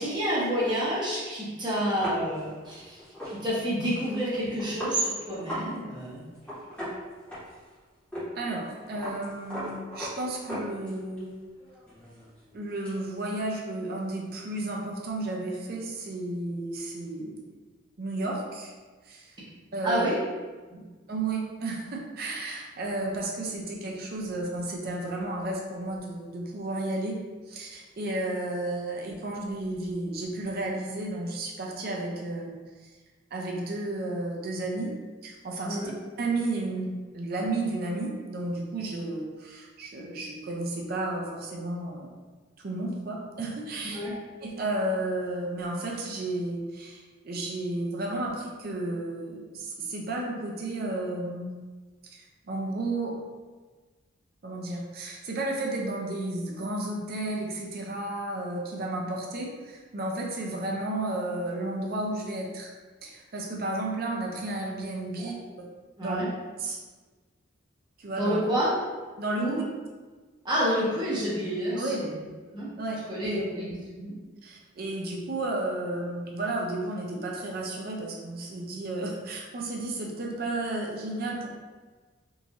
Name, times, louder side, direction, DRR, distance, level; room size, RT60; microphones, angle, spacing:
voice 1, 0.0-3.0 3.3-6.2 19.8-20.2 20.7-20.8 35.6-35.9 43.9-44.1 65.1-65.3 66.0-66.3 68.2-68.7 69.4-69.6 70.4-72.2 72.5-72.7 73.1-74.1, equal, 20° right, -8 dB, 1.0 m, -29 dB
sound 1, 2.0-5.7 5.9-6.1 6.3-7.7 8.1-8.3 8.5-11.2 11.6-13.0, equal, 5° left, 1.1 m, -38 dB
voice 2, 8.4-11.3 12.5-17.5 18.0-18.7 19.0-19.3 19.7-20.1 21.1-27.2 27.5-32.5 33.3-34.9 35.2-35.9 36.2-42.2 42.6-44.0 44.4-51.5 52.1-53.2 54.4-62.7 63.0-65.7 66.0-66.2 66.6-66.8 68.0-68.4 69.2-69.5 71.7-72.0 72.8-73.4 74.4-81.5, right 2 dB, 50° right, -1 dB, 0.5 m, -32 dB
3.8 x 2.5 x 2.9 m, 1.4 s
head